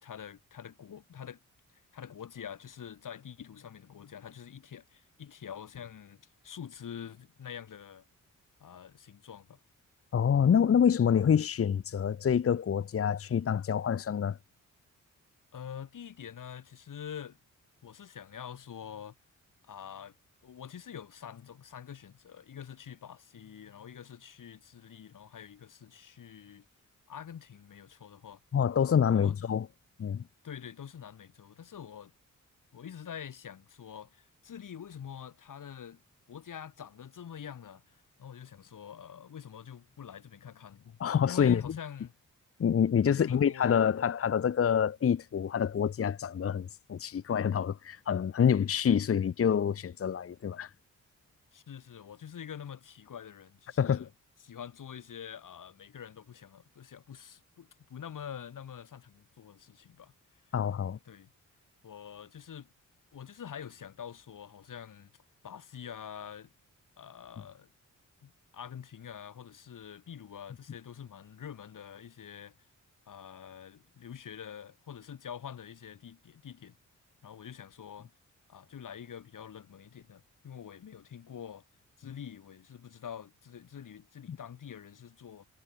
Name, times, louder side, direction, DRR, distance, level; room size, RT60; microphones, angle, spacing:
voice 1, 0.0-1.4 1.9-8.1 8.6-9.6 15.5-17.4 17.8-19.2 19.6-20.1 20.4-26.6 27.1-28.4 29.0-29.4 30.4-32.1 32.7-36.0 36.3-41.0 41.3-42.2 43.1-43.8 51.5-54.1 54.4-60.1 60.5-60.6 61.1-61.3 61.8-62.7 63.1-65.1 65.4-66.5 67.0-67.7 68.2-72.5 73.1-76.8 77.2-78.1 78.5-81.6 82.0-85.4, left 8 dB, 75° left, 5.3 m, -46 dB
voice 2, 10.1-14.4 28.5-29.6 30.0-30.2 41.0-41.8 42.6-50.7 53.8-54.0 60.5-61.0 84.3-84.4, left 8 dB, 45° left, 0.8 m, -27 dB
cardioid pair, 100°, 32 cm